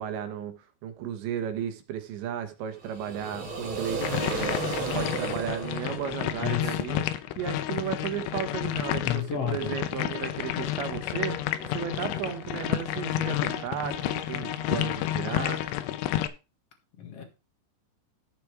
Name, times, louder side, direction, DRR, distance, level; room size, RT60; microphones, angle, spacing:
voice 1, 0.0-4.5 4.9-7.0 7.4-11.4 11.7-15.6, right 9 dB, 75° right, 3.4 m, -34 dB
sound 1, 2.8-6.8, right 4 dB, 45° right, 1.7 m, -34 dB
sound 2, 4.0-16.3, left 13 dB, 80° left, 3.1 m, -30 dB
voice 2, 6.2-6.8 9.0-9.8 17.0-17.2, left 9 dB, 60° left, 1.6 m, -32 dB
sound 3, 10.5-16.0, right 2 dB, ahead, 0.4 m, -47 dB
13.5 x 5.1 x 4.7 m
omnidirectional pair, 5.5 m